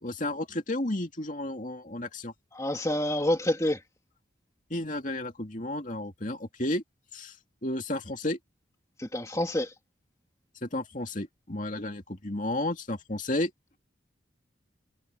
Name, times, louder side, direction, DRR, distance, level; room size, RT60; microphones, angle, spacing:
voice 1, 0.0-2.3 4.7-6.8 7.1-7.3 7.6-8.4 10.6-13.5, left 1 dB, 40° left, 2.6 m, -32 dB
voice 2, 2.5-3.8 9.0-9.7, left 1 dB, 15° left, 2.4 m, -27 dB
head